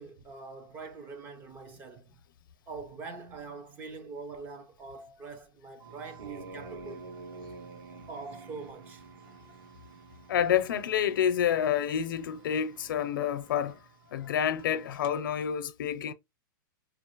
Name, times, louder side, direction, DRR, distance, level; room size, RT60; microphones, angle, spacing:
voice 1, 0.0-2.2 2.7-7.1 8.1-9.0, right 4 dB, 15° right, 0.4 m, -43 dB
sound 1, 5.8-15.1, right 4 dB, 80° right, 1.4 m, -49 dB
voice 2, 10.3-13.8 14.1-16.1, left 9 dB, 65° left, 0.6 m, -28 dB
5.1 x 2.0 x 2.9 m
supercardioid pair, 170°, 12 cm